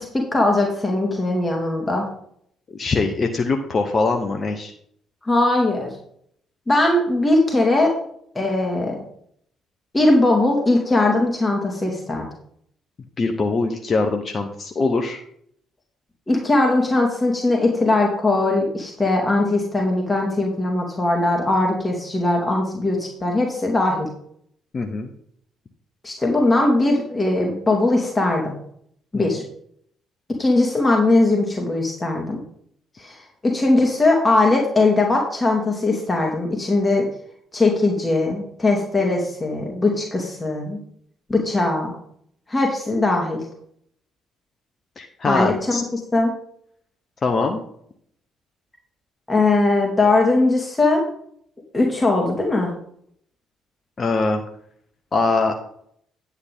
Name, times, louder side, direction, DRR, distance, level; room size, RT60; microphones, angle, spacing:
voice 1, 0.0-2.0 5.2-5.9 6.7-7.9 8.3-9.0 9.9-12.3 16.3-24.1 26.0-28.5 29.1-29.4 30.4-32.4 33.0-37.1 37.5-40.8 41.3-41.9 42.5-43.4 45.3-45.8 46.1-46.3 49.3-51.0 51.7-52.7, left 2 dB, 20° left, 0 dB, 2.5 m, -20 dB
voice 2, 2.7-4.7 13.2-15.2 24.7-25.1 29.1-29.2 45.0-45.8 47.2-47.6 54.0-54.4 55.1-55.5, left 3 dB, 40° left, 5 dB, 1.0 m, -22 dB
9.8 x 8.1 x 3.7 m, 0.66 s
hypercardioid pair, 45°, 0 cm